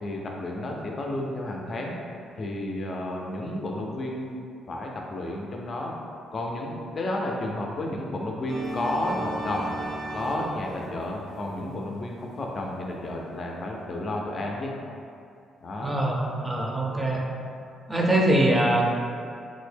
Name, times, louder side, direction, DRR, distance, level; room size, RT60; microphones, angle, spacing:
voice 1, 0.0-2.0 2.4-4.4 4.7-5.9 6.3-9.7 10.1-14.7 15.6-16.0, left 1 dB, 45° left, -1 dB, 0.5 m, -31 dB
sound 1, 8.5-12.9, right 1 dB, 60° right, 0.5 m, -36 dB
voice 2, 15.8-17.2 17.9-18.9, right 1 dB, 15° right, -2 dB, 0.5 m, -23 dB
3.7 x 2.1 x 3.3 m, 2.5 s
cardioid pair, 90°, 0 cm